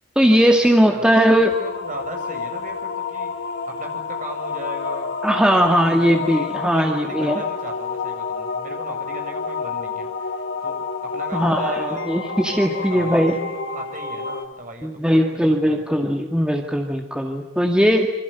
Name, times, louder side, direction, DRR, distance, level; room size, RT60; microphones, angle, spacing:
voice 1, 0.2-1.5 5.2-7.4 11.3-13.4 14.8-18.1, equal, 5° right, 2 dB, 2.0 m, -18 dB
voice 2, 0.8-12.1 12.7-13.2 13.5-15.8, right 2 dB, 35° right, 3 dB, 7.8 m, -37 dB
sound 1, 1.5-14.5, left 5 dB, 55° left, 3.9 m, -29 dB
28.0 x 26.5 x 6.9 m, 0.92 s
head